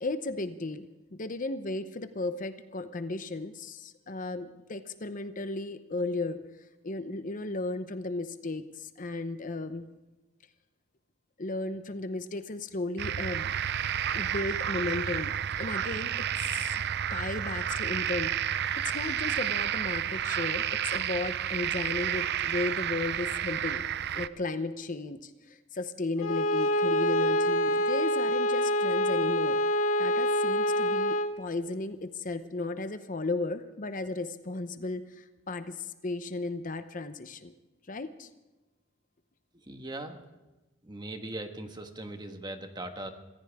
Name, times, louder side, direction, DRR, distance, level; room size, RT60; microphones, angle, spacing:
voice 1, 0.0-6.4 6.8-9.9 11.4-13.5 14.1-16.3 16.7-18.6 18.8-23.8 24.1-29.6 30.0-37.5 37.9-38.3, left 2 dB, 40° left, 10 dB, 0.8 m, -35 dB
sound 1, 13.0-24.3, right 10 dB, 55° right, 0.5 m, -31 dB
Bowed string instrument, 26.2-31.4, left 1 dB, 80° left, 1.2 m, -26 dB
voice 2, 39.6-40.2 40.8-43.1, right 1 dB, 20° right, 6 dB, 1.5 m, -39 dB
26.0 x 15.0 x 3.6 m, 1.1 s
head